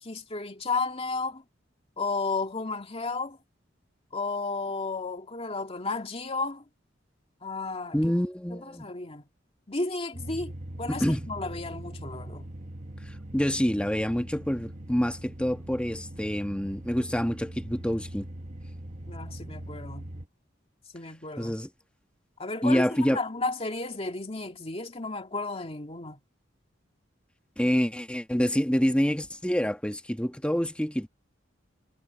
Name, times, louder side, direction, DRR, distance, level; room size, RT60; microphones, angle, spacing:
voice 1, 0.0-1.4 2.0-3.4 4.1-6.6 7.4-8.0 8.5-9.2 9.7-12.5 19.1-20.1 20.9-21.5 22.4-26.2, left 3 dB, 30° left, 2.3 m, -33 dB
voice 2, 7.9-8.9 10.9-11.3 13.3-18.3 21.4-21.7 22.6-23.2 27.6-31.1, equal, 5° left, 1.4 m, -27 dB
sound 1, 10.1-20.3, right 1 dB, 40° right, 1.2 m, -41 dB
head